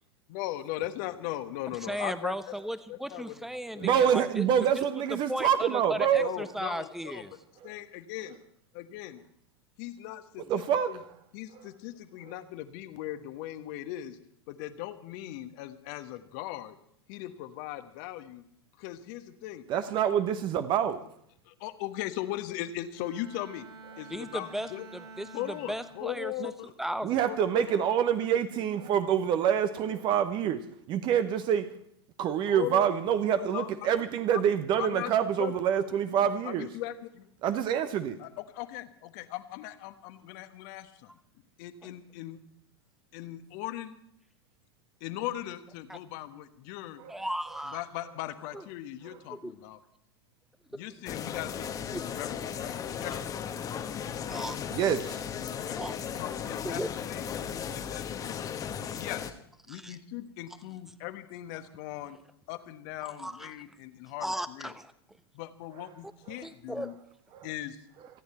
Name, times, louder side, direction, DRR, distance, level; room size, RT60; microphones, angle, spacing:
voice 1, 0.3-2.3 2.9-3.4 3.7-3.9 6.1-7.2 7.6-8.3 8.7-9.2 9.8-11.0 11.3-14.2 14.5-16.8 17.1-18.4 18.8-19.6 21.5-23.7 24.0-24.9 25.3-26.7 27.3-27.9 32.5-32.9 33.4-33.9 34.8-35.1 35.4-35.5 36.4-37.3 38.2-41.2 41.6-42.4 43.1-43.9 45.0-47.0 47.7-49.8 50.7-52.7 53.0-53.2 55.6-55.8 56.2-56.8 57.1-57.3 57.7-58.5 58.9-59.3 59.7-62.2 62.5-64.7 65.3-66.9 67.4-67.8, left 14 dB, 45° left, 1.3 m, -39 dB
voice 2, 1.8-4.4 4.7-4.8 5.1-7.3 24.1-26.5 26.8-27.2 45.9-46.0 47.1-47.8 48.5-48.6 49.3-49.5 50.7-50.8 51.9-52.0 54.3-54.6 55.8-56.0 56.6-56.9 59.7-60.0 63.0-63.5 64.2-64.9 66.4-66.9, equal, ahead, 1.0 m, -36 dB
voice 3, 3.8-6.3 10.4-11.1 19.7-21.0 27.0-30.6 30.9-31.7 32.2-36.7 37.4-38.2 47.0-47.2 49.0-49.2 54.7-55.2 66.3-66.4 67.3-67.5, right 9 dB, 35° right, 1.1 m, -26 dB
Bowed string instrument, 22.9-26.5 27.0-27.3, right 4 dB, 70° right, 4.9 m, -49 dB
sound 1, 51.1-59.3, left 8 dB, 25° left, 1.3 m, -36 dB
28.0 x 10.0 x 4.4 m
figure-of-eight pair, 95°, 14 cm